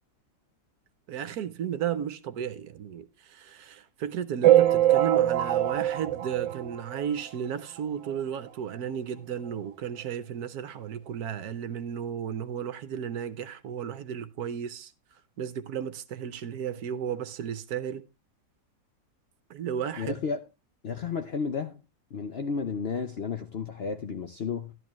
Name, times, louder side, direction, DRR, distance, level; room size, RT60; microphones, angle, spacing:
voice 1, 1.1-14.9 15.4-18.0 19.5-20.2, right 8 dB, 65° right, 1.2 m, -34 dB
sound 1, 4.4-7.3 7.8-8.2 8.5-8.6 9.5-9.6 10.0-10.1, right 13 dB, 80° right, 1.4 m, -23 dB
voice 2, 20.0-20.4 20.8-21.8 22.1-24.7, left 5 dB, 70° left, 0.5 m, -32 dB
13.0 x 11.0 x 3.0 m
omnidirectional pair, 2.0 m